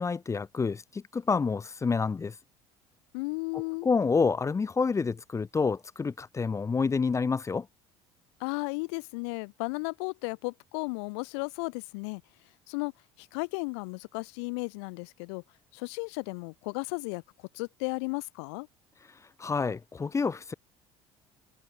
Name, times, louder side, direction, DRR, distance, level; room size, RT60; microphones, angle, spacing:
voice 1, 0.0-2.3 3.5-7.7 19.4-20.5, left 5 dB, 20° left, 0.5 m, -28 dB
voice 2, 3.1-3.9 8.4-12.2 12.7-12.9 13.2-15.4 15.7-17.2 17.5-18.7, left 31 dB, 70° left, 1.1 m, -34 dB
hypercardioid pair, 65°, 15 cm